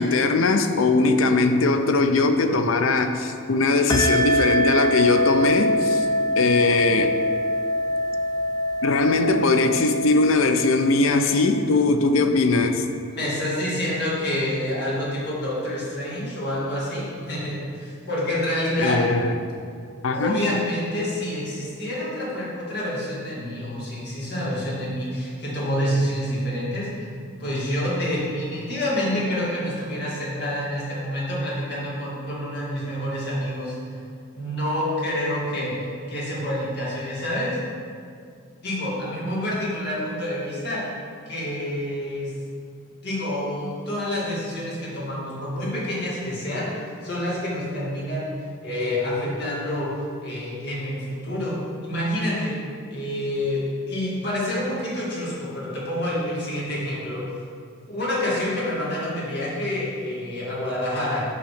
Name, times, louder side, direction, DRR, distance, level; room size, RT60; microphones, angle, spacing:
voice 1, 0.0-6.1 6.4-7.2 8.8-12.9 18.8-19.4 20.0-20.4, left 3 dB, 80° left, 7 dB, 0.5 m, -20 dB
sound 1, 3.9-12.0, equal, 20° left, 0.5 m, -24 dB
voice 2, 13.1-19.0 20.1-27.1 27.4-33.8 34.3-35.8 36.1-37.6 38.6-40.8 41.3-42.3 43.0-48.3 48.6-49.9 50.2-52.6 52.9-57.2 57.9-61.2, left 1 dB, 55° left, -6 dB, 1.9 m, -27 dB
8.5 x 3.1 x 6.5 m, 2.2 s
head